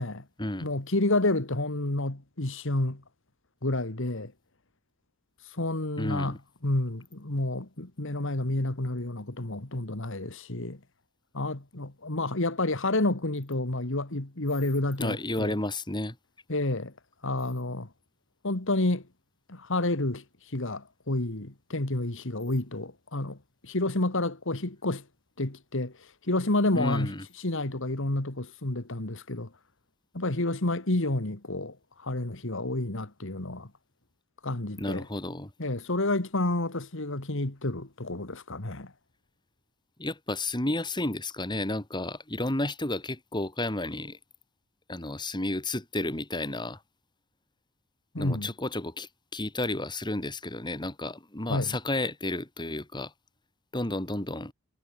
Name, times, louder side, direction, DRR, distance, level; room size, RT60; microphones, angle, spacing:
voice 1, 0.6-3.0 3.6-4.3 5.6-10.8 11.3-15.5 16.5-16.9 17.2-17.9 18.4-19.0 19.5-20.2 20.5-23.4 23.6-25.0 25.4-25.9 26.3-27.1 27.4-29.5 30.1-31.8 32.0-33.7 34.4-35.1 35.6-38.9 48.1-48.5 51.5-51.8, left 2 dB, 60° left, 2.2 m, -29 dB
voice 2, 6.0-6.4 15.0-16.2 26.7-27.2 34.8-35.5 40.0-44.2 44.9-46.8 48.2-53.1 53.7-54.5, left 2 dB, 20° left, 2.6 m, -32 dB
head